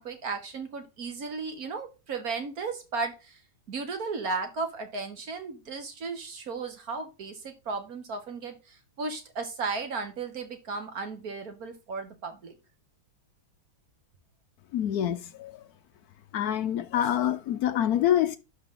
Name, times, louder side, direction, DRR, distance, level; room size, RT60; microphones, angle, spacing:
voice 1, 0.0-3.4 3.7-12.6, right 4 dB, 45° right, 1.7 m, -35 dB
voice 2, 14.7-15.6 16.3-18.4, left 11 dB, 80° left, 0.8 m, -26 dB
11.5 x 4.2 x 3.7 m
omnidirectional pair, 2.3 m